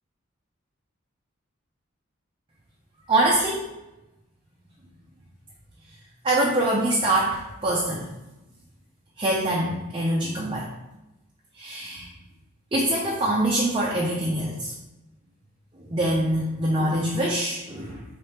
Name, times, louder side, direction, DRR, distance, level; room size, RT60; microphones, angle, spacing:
voice 1, 3.1-3.7 6.2-8.1 9.2-10.7 11.5-12.2 12.7-14.7 15.7-18.0, right 1 dB, 25° right, -4 dB, 0.5 m, -24 dB
3.4 x 3.3 x 4.2 m, 0.98 s
head